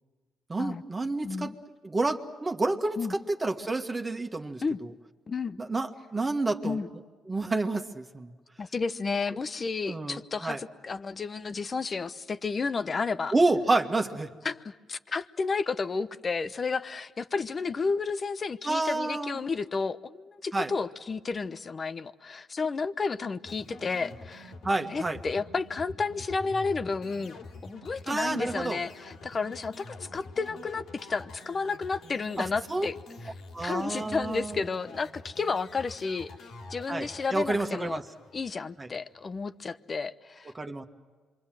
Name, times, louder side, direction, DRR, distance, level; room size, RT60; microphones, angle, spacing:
voice 1, 0.5-1.5 1.8-4.9 5.6-6.8 7.3-8.3 9.9-10.6 13.3-14.3 18.6-19.4 20.5-20.7 24.6-25.2 28.1-28.8 32.4-32.9 33.5-34.6 36.9-38.0 38.8-38.9 40.5-40.8, right 2 dB, 25° right, 4 dB, 1.7 m, -29 dB
voice 2, 1.2-1.5 3.0-3.2 4.6-4.8 5.3-5.6 6.6-6.9 8.6-13.3 14.4-24.5 24.9-32.9 33.6-36.3 36.7-38.0 38.3-40.5, left 4 dB, 35° left, 13 dB, 1.0 m, -32 dB
sound 1, 23.4-38.8, left 2 dB, 75° left, 2.9 m, -46 dB
27.0 x 24.0 x 7.6 m, 1.4 s
cardioid pair, 90°, 0 cm